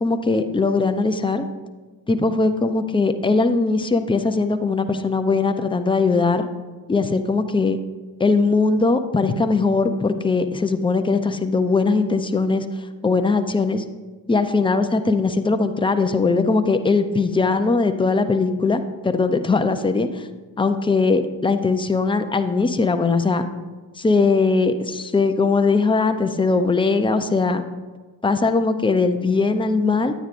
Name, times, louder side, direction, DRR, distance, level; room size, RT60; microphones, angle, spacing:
voice 1, 0.0-1.5 2.1-6.5 6.9-7.8 8.2-12.7 13.0-13.8 14.3-20.3 20.6-23.4 24.0-27.6 28.2-30.1, left 3 dB, 10° left, 8 dB, 0.5 m, -20 dB
9.4 x 9.1 x 2.5 m, 1.3 s
supercardioid pair, 70°, 48 cm